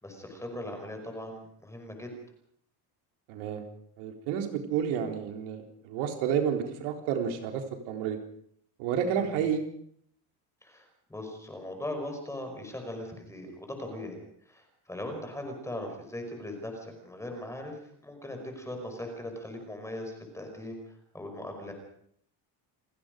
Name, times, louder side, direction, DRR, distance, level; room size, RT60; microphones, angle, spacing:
voice 1, 0.0-2.1 10.6-14.2 14.4-21.7, left 1 dB, 5° left, 4 dB, 5.1 m, -39 dB
voice 2, 3.3-3.6 4.0-8.2 8.8-9.6, right 8 dB, 85° right, 4 dB, 4.1 m, -30 dB
29.0 x 18.0 x 5.3 m, 0.66 s
cardioid pair, 170°, 47 cm